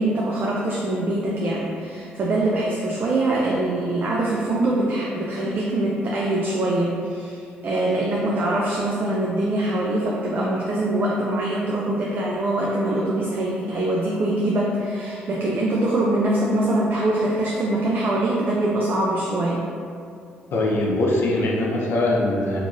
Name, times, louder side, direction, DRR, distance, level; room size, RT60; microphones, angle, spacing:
voice 1, 0.0-19.6, right 1 dB, 50° right, -4 dB, 0.4 m, -23 dB
voice 2, 20.5-22.6, left 2 dB, 60° left, -2 dB, 0.5 m, -22 dB
2.9 x 2.5 x 2.4 m, 2.3 s
supercardioid pair, 60°, 4 cm